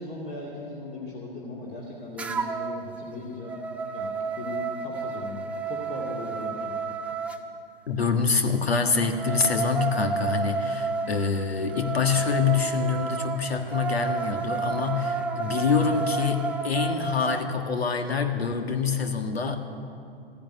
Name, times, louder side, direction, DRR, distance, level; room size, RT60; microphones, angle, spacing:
voice 1, 0.0-3.6 3.9-4.1 4.4-6.8, left 2 dB, 30° left, -5 dB, 2.5 m, -38 dB
sound 1, 2.2-2.8 3.2-7.4 8.9-17.5, right 4 dB, 5° right, 0.3 m, -31 dB
voice 2, 7.9-19.6, left 5 dB, 85° left, 6 dB, 1.6 m, -26 dB
14.0 x 10.5 x 9.6 m, 2.6 s
hypercardioid pair, 115°, 30 cm